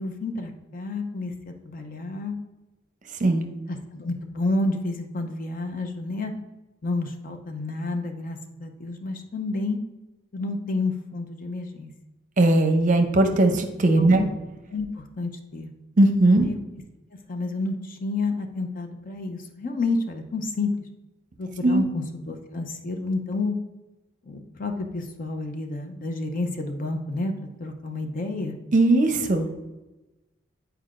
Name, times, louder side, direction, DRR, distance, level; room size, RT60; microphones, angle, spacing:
voice 1, 0.0-2.4 3.7-6.3 6.8-9.8 10.3-11.9 14.0-14.3 14.7-15.7 16.4-16.6 17.3-20.7 21.4-23.6 24.2-27.3 27.6-28.6, left 2 dB, 45° left, 5 dB, 0.6 m, -30 dB
voice 2, 12.4-14.2 16.0-16.5 21.6-21.8 28.7-29.5, right 2 dB, 40° right, 6 dB, 0.6 m, -19 dB
8.5 x 4.6 x 2.5 m, 1.1 s
head